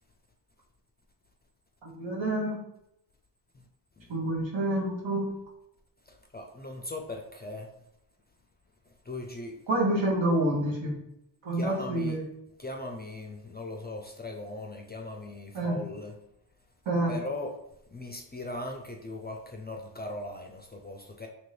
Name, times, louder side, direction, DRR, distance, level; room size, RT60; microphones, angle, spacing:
voice 1, 1.8-2.6 4.1-5.3 9.7-11.0 11.4-12.3 15.5-15.8 16.9-17.1, right 1 dB, 75° right, -3 dB, 1.1 m, -28 dB
voice 2, 6.1-7.7 9.1-9.5 11.6-12.2 12.6-16.1 17.1-17.5 17.9-21.3, left 2 dB, 20° left, 3 dB, 0.4 m, -39 dB
2.9 x 2.6 x 3.2 m, 0.81 s
cardioid pair, 45°, 47 cm